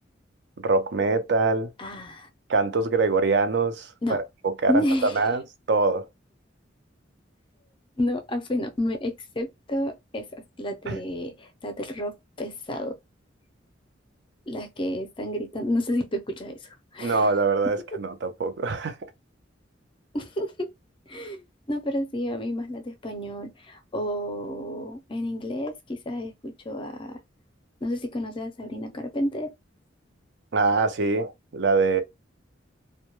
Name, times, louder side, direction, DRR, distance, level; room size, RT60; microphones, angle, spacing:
voice 1, 0.6-1.7 2.5-4.2 4.6-5.4 5.7-6.1 10.9-11.0 17.0-19.0 30.5-32.0, right 3 dB, 60° right, 0.5 m, -23 dB
voice 2, 1.8-2.3 4.0-4.2 4.7-5.2 8.0-13.0 14.5-17.3 20.1-20.7 21.1-27.2 27.8-29.5, left 1 dB, 25° left, 0.5 m, -30 dB
2.1 x 2.1 x 3.0 m
head